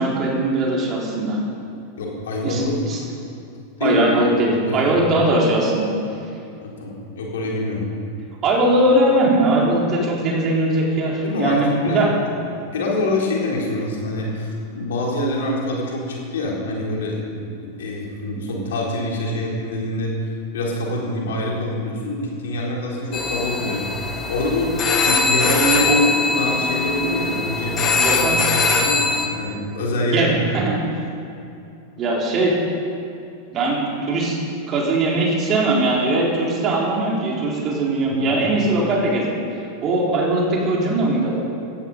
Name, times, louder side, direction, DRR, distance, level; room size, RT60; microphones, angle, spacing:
voice 1, 0.0-1.4 2.4-3.0 3.8-5.9 8.4-12.1 25.9-26.0 27.9-28.4 30.0-30.8 32.0-32.6 33.5-34.4 34.7-39.4 39.8-41.4, right 2 dB, 30° right, -3 dB, 4.4 m, -20 dB
voice 2, 2.0-3.1 3.8-4.3 4.7-4.9 6.6-7.9 11.1-17.5 17.8-23.8 24.3-30.3 38.1-38.4, left 1 dB, 60° left, -2 dB, 4.0 m, -25 dB
sound 1, 23.1-29.3, left 4 dB, 25° left, 1.7 m, -21 dB
17.0 x 13.5 x 5.6 m, 2.7 s
figure-of-eight pair, 90°, 0 cm